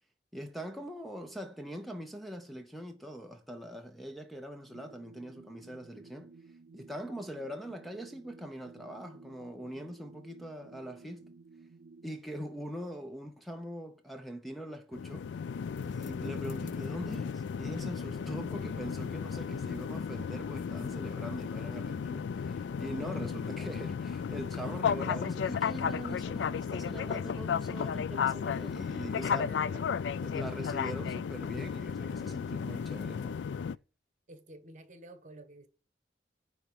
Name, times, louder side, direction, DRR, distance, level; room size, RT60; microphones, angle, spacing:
voice 1, 0.3-11.3 12.0-15.3 15.8-29.6 30.2-33.4, equal, ahead, 0.7 m, -42 dB
sound 1, 4.7-12.1, right 4 dB, 60° right, 0.5 m, -55 dB
sound 2, 14.9-33.8, left 6 dB, 90° left, 0.3 m, -34 dB
voice 2, 29.4-29.9 34.3-35.7, right 1 dB, 45° right, 1.5 m, -50 dB
10.0 x 3.6 x 7.0 m
head